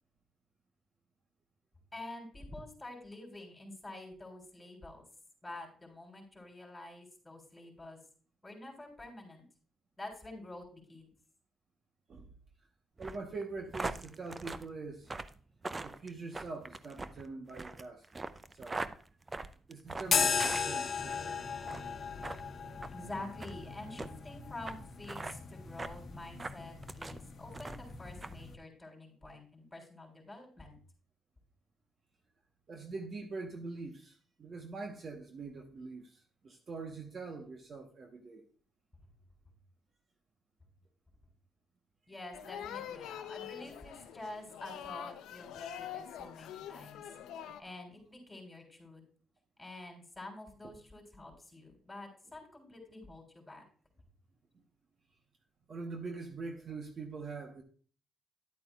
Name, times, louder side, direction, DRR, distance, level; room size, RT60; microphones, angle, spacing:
voice 1, 1.9-5.0 5.4-8.0 8.4-9.4 10.0-11.1 22.9-30.7 42.1-47.0 47.6-49.0 49.6-53.7, left 2 dB, 10° left, 3.6 m, -48 dB
sound 1, 13.0-21.2 21.6-21.9 22.2-22.4 22.8-22.9 23.4-23.6 24.0-24.1 24.7-24.8 25.0-25.4 25.8-26.0 26.4-27.2 27.5-27.9 28.2-28.3, right 3 dB, 25° right, 0.5 m, -41 dB
voice 2, 13.0-15.1 15.8-18.1 18.5-18.9 19.7-21.4 32.7-38.4 55.7-57.6, right 3 dB, 45° right, 1.2 m, -43 dB
sound 2, 20.0-28.6, left 6 dB, 50° left, 1.2 m, -37 dB
sound 3, 42.3-47.6, left 10 dB, 85° left, 0.7 m, -44 dB
11.0 x 8.6 x 2.4 m
cardioid pair, 90°, 0 cm